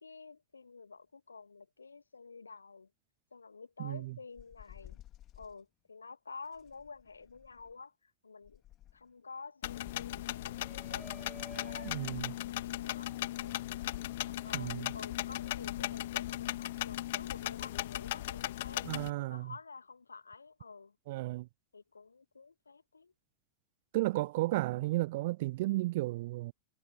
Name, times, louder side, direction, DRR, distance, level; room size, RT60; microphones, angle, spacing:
voice 1, 0.0-2.9 3.3-5.0 5.4-8.6 8.9-13.6 14.3-21.0 21.7-23.1, left 4 dB, 75° left, 2.4 m, -50 dB
voice 2, 3.8-4.1 11.8-12.3 14.5-14.9 18.8-19.5 21.1-21.5 23.9-26.5, right 18 dB, 50° right, 0.5 m, -33 dB
sound 1, 4.4-5.6 6.5-7.8 8.4-9.1 9.8-11.5, left 13 dB, 30° left, 3.0 m, -55 dB
sound 2, 9.6-19.1, left 15 dB, 55° left, 1.7 m, -37 dB
Shout, 10.4-15.5, right 2 dB, 5° right, 7.0 m, -56 dB
figure-of-eight pair, 90°, 0 cm